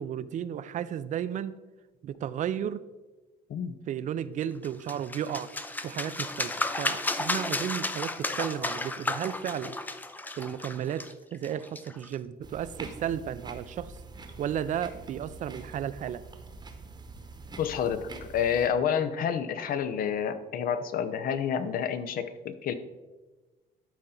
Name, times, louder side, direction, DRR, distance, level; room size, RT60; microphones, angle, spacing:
voice 1, 0.0-1.5 2.0-2.8 3.9-5.5 5.8-6.5 6.8-9.8 10.4-11.0 11.3-13.9 14.4-16.2, right 9 dB, 50° right, 15 dB, 0.4 m, -33 dB
sound 1, 4.6-12.1, left 2 dB, 10° left, 0.4 m, -33 dB
sound 2, 12.4-18.7, right 3 dB, 25° right, 1.0 m, -45 dB
voice 2, 17.6-22.7, left 8 dB, 60° left, 12 dB, 0.7 m, -29 dB
11.5 x 4.3 x 3.8 m, 1.2 s
cardioid pair, 110°, 17 cm